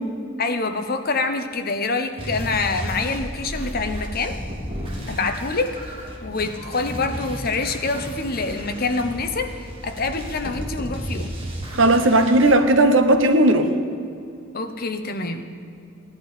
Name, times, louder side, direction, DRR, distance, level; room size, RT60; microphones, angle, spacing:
voice 1, 0.4-4.4 5.1-5.9 6.2-11.3 14.5-15.4, left 3 dB, 45° left, 7 dB, 0.9 m, -26 dB
sound 1, 2.2-12.5, equal, 25° right, 2.2 m, -33 dB
voice 2, 11.7-13.7, right 1 dB, 65° right, 7 dB, 1.1 m, -16 dB
17.0 x 11.0 x 5.1 m, 2.5 s
head